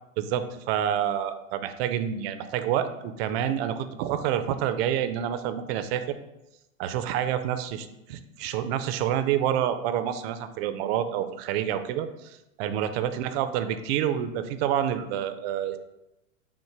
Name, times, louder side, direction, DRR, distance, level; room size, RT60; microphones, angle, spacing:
voice 1, 0.2-6.2 6.8-15.8, right 10 dB, 55° right, 10 dB, 0.5 m, -28 dB
6.2 x 2.1 x 3.3 m, 0.93 s
hypercardioid pair, 105°, 39 cm